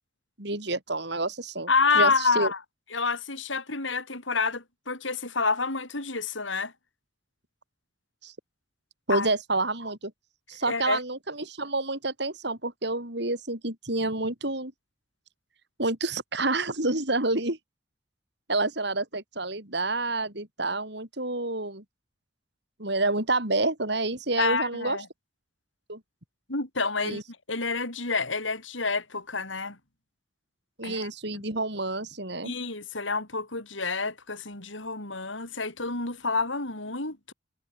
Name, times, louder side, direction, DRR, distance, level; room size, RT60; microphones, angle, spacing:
voice 1, 0.4-1.7 1.9-2.5 8.2-8.3 9.1-10.1 10.5-14.7 15.8-17.6 18.5-21.8 22.8-25.0 25.9-26.0 27.0-27.2 30.8-32.5, right 2 dB, 60° right, 5.6 m, -28 dB
voice 2, 1.7-2.6 2.9-6.7 9.1-9.3 10.7-11.0 24.4-25.1 26.5-27.2 27.5-29.8 30.8-31.4 32.4-37.3, left 4 dB, 90° left, 6.6 m, -28 dB
head